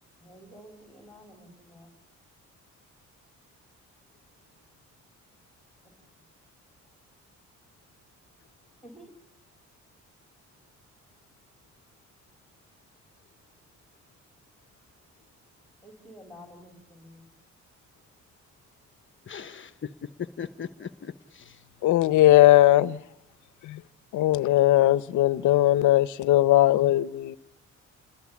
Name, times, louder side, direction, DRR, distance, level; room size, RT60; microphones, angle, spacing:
voice 1, 0.2-1.9 5.8-6.1 8.8-9.1 15.8-17.3, equal, ahead, 4.5 m, -50 dB
voice 2, 19.3-21.7, left 7 dB, 40° left, 1.1 m, -39 dB
voice 3, 21.8-23.0 23.6-23.8 24.1-27.4, left 14 dB, 80° left, 0.9 m, -19 dB
29.0 x 21.0 x 8.5 m
cardioid pair, 90°, 30 cm